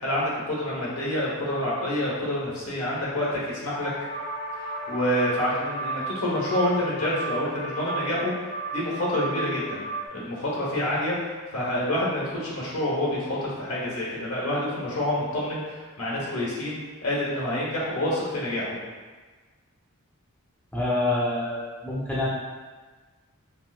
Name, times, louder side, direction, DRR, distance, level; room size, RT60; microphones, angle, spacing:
voice 1, 0.0-3.9 4.6-8.3 8.7-9.8 10.1-11.2 11.5-18.8, left 1 dB, 70° left, -6 dB, 1.1 m, -27 dB
sound 1, 3.7-10.1, right 3 dB, 50° left, 0.8 m, -34 dB
voice 2, 20.7-22.3, left 2 dB, 10° left, -7 dB, 0.4 m, -26 dB
4.5 x 2.0 x 2.4 m, 1.4 s
head